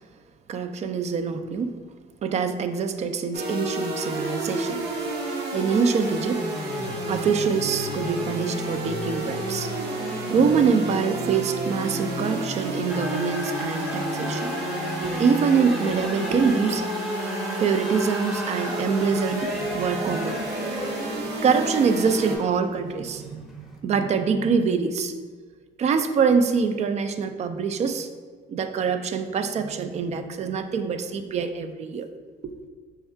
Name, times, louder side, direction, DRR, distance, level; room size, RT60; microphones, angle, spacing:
voice 1, 0.5-1.7 2.2-4.8 5.5-6.4 7.1-9.7 10.3-14.6 15.0-16.9 17.6-20.5 21.4-25.1 25.8-28.1 28.5-32.1 32.4-32.5, right 5 dB, 40° right, 9 dB, 0.4 m, -24 dB
sound 1, 3.3-22.4, right 2 dB, 75° right, 0.9 m, -30 dB
sound 2, 12.9-23.8, left 1 dB, ahead, 0.7 m, -36 dB
4.4 x 2.3 x 4.4 m, 1.5 s
cardioid pair, 110°, 17 cm